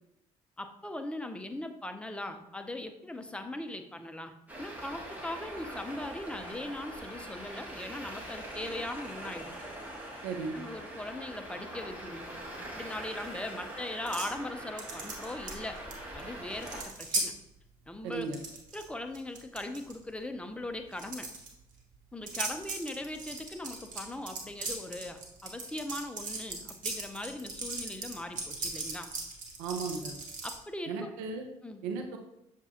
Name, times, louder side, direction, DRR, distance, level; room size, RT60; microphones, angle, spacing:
voice 1, 0.6-9.7 10.1-10.2 10.5-12.3 12.6-15.8 16.1-17.3 17.9-18.3 18.7-21.3 22.1-29.1 30.4-31.1 31.6-31.8, left 1 dB, 5° left, 6 dB, 0.6 m, -40 dB
Traffic noise roadway noise, 4.5-16.8, right 1 dB, 10° right, 1.4 m, -43 dB
voice 2, 10.2-10.6 18.0-18.4 29.6-30.2 30.9-31.5 31.8-32.2, right 4 dB, 80° right, 4 dB, 0.5 m, -35 dB
sound 1, 14.1-14.4 14.8-15.9 16.2-16.3 16.6-17.3 18.1-18.8 19.1-19.9 20.9-21.5 22.3-30.6, right 3 dB, 55° right, 1.2 m, -37 dB
6.7 x 2.5 x 2.9 m, 0.86 s
hypercardioid pair, 55°, 16 cm